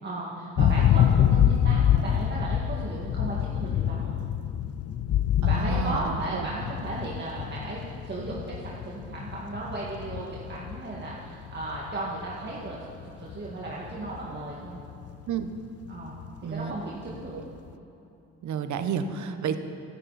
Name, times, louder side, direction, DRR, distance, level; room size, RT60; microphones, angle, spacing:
voice 1, 0.0-4.2 5.5-12.8 13.2-14.8 15.9-17.4 19.2-19.4, right 2 dB, 35° right, -5 dB, 2.2 m, -35 dB
sound 1, 0.6-16.8 17.0-17.4, left 10 dB, 55° left, 0.5 m, -26 dB
voice 2, 5.4-6.5 15.3-15.5 16.4-16.7 17.3-17.4 18.4-19.6, right 7 dB, 70° right, 9 dB, 1.1 m, -31 dB
17.5 x 10.5 x 4.2 m, 2.9 s
cardioid pair, 90°, 30 cm